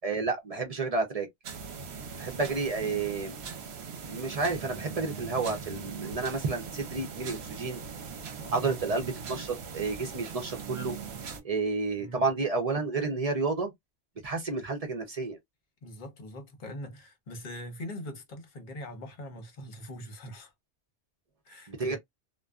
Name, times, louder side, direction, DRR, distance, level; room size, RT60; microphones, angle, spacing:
voice 1, 0.0-1.3 2.1-3.4 4.1-7.8 8.5-11.0 11.4-13.7 14.2-15.4 21.7-22.0, right 3 dB, 40° right, 0.6 m, -30 dB
sound 1, 1.4-11.4, right 6 dB, 65° right, 0.9 m, -40 dB
voice 2, 8.4-8.9 12.0-12.2 15.8-20.5 21.4-22.0, left 1 dB, 45° left, 0.9 m, -42 dB
2.5 x 2.2 x 2.2 m
omnidirectional pair, 1.2 m